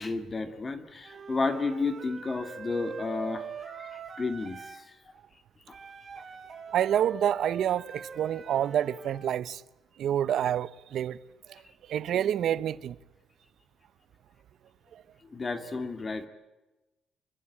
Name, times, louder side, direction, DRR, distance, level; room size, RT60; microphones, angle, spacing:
voice 1, 0.0-4.8 6.2-6.3 15.3-16.3, left 3 dB, 25° left, 2.3 m, -32 dB
Wind instrument woodwind instrument, 1.0-4.8 5.7-9.3, right 6 dB, 35° right, 4.1 m, -43 dB
voice 2, 6.7-9.6 10.0-11.2 11.9-13.0, right 10 dB, 65° right, 0.9 m, -28 dB
28.0 x 23.5 x 8.7 m
cardioid pair, 130°, 0 cm